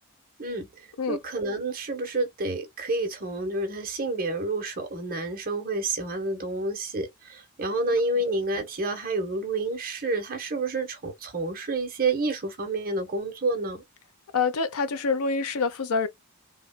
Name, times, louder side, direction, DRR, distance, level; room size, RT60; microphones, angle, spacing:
voice 1, 1.1-13.8, right 2 dB, 40° right, 0.9 m, -29 dB
voice 2, 14.3-16.1, left 4 dB, 75° left, 0.6 m, -26 dB
3.5 x 2.2 x 2.2 m
head